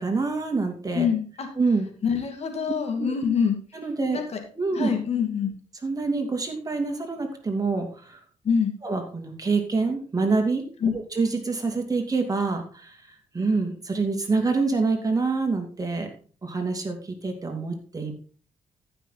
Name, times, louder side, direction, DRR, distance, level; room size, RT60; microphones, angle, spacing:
voice 1, 0.0-1.1 1.6-1.9 3.0-3.1 3.7-4.2 4.6-4.9 5.8-8.2 8.8-10.7 11.1-13.0 13.3-16.1 16.4-18.1, right 3 dB, 30° right, 4 dB, 2.6 m, -26 dB
voice 2, 0.9-1.5 2.0-3.6 4.1-4.4 4.7-5.5 8.4-8.7 10.8-10.9, left 6 dB, 60° left, 5 dB, 2.4 m, -25 dB
14.0 x 6.1 x 4.0 m, 0.40 s
cardioid pair, 70°, 12 cm